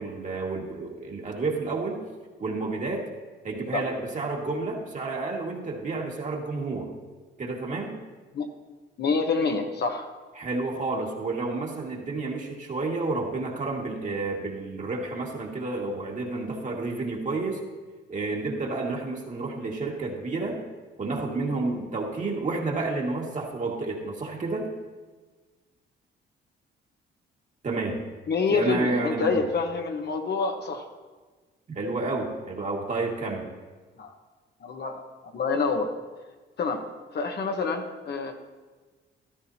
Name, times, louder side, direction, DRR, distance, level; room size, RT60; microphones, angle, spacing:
voice 1, 0.0-2.0 2.4-3.1 3.4-6.9 7.4-8.0 10.4-17.6 18.1-20.6 21.0-24.7 27.6-28.1 28.5-29.4 31.7-33.5, right 3 dB, 40° right, -1 dB, 2.0 m, -30 dB
voice 2, 9.0-10.1 18.5-18.6 28.3-30.9 34.0-34.1 34.6-35.0 35.3-35.9 36.6-36.9 37.1-38.3, left 4 dB, 55° left, 4 dB, 1.2 m, -27 dB
14.5 x 13.0 x 2.8 m, 1.4 s
cardioid pair, 90°, 20 cm